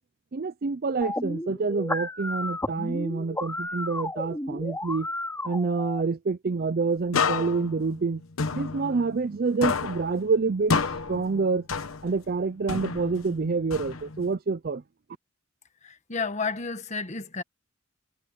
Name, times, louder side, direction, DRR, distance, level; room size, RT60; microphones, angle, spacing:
voice 1, 0.3-5.1 5.4-8.2 8.5-10.8 11.1-11.6 12.0-14.8, right 4 dB, 45° right, 0.5 m, -27 dB
sound 1, 1.0-6.0, left 1 dB, 10° left, 5.1 m, -33 dB
sound 2, 7.1-9.4 9.6-12.3 12.7-14.3, left 4 dB, 80° left, 1.1 m, -30 dB
voice 2, 15.8-17.4, left 4 dB, 35° left, 1.5 m, -31 dB
head